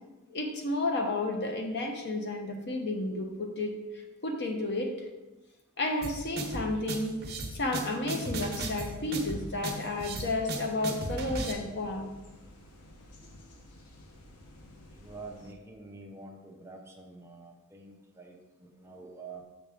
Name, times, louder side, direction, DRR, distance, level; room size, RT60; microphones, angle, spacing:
voice 1, 0.3-5.1 5.8-7.2 7.5-12.1, left 2 dB, 50° left, 3 dB, 1.0 m, -32 dB
sound 1, 6.0-11.5, right 2 dB, 45° right, 1.0 m, -36 dB
sound 2, 8.3-15.5, left 1 dB, 85° left, 0.9 m, -51 dB
voice 2, 15.0-19.4, right 3 dB, 10° right, 1 dB, 0.7 m, -47 dB
7.0 x 6.0 x 3.6 m, 1.1 s
head